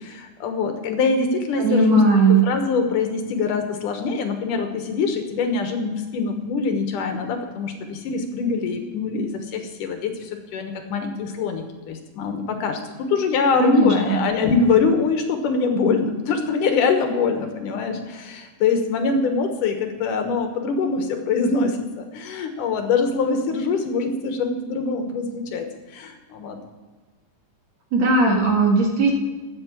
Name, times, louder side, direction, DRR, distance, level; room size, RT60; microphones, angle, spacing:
voice 1, 0.0-2.0 2.3-25.7 25.9-26.6, left 4 dB, 70° left, 5 dB, 2.6 m, -24 dB
voice 2, 1.6-2.4 13.6-14.2 27.9-29.1, right 2 dB, 55° right, 0 dB, 2.8 m, -17 dB
13.0 x 8.2 x 7.3 m, 1.3 s
omnidirectional pair, 4.0 m